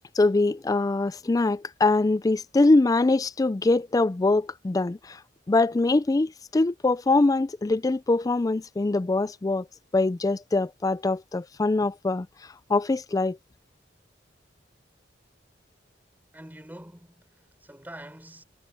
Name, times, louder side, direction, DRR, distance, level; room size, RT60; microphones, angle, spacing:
voice 1, 0.2-5.2 5.5-9.7 9.9-12.3 12.7-13.4, left 2 dB, 20° left, 0.3 m, -23 dB
voice 2, 16.3-18.4, right 1 dB, 10° right, 4.6 m, -45 dB
head